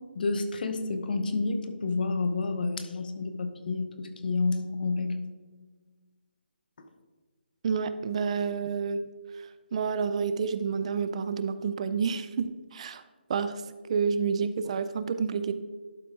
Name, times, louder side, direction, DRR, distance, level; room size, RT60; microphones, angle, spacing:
voice 1, 0.1-5.2, left 3 dB, 55° left, 8 dB, 1.0 m, -29 dB
voice 2, 7.6-9.0 9.3-13.0 13.3-13.6 13.9-15.5, right 6 dB, 35° right, 12 dB, 0.4 m, -29 dB
11.5 x 4.7 x 3.7 m, 1.4 s
figure-of-eight pair, 155°, 6 cm